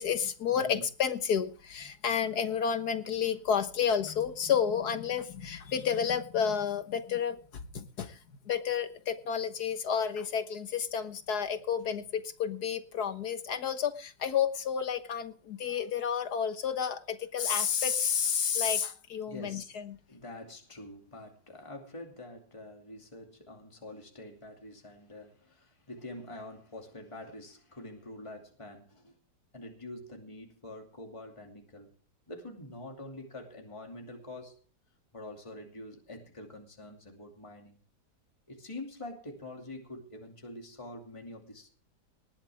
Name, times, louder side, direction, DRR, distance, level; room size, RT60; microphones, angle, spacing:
voice 1, 0.0-7.4 7.7-8.2 8.5-20.0, left 7 dB, 65° left, 1.8 m, -31 dB
voice 2, 0.5-0.8 19.3-19.8 20.1-29.1 29.5-31.9 32.3-34.6 35.1-37.8 38.5-41.7, left 1 dB, 15° left, 2.6 m, -46 dB
19.5 x 12.5 x 3.5 m
omnidirectional pair, 1.8 m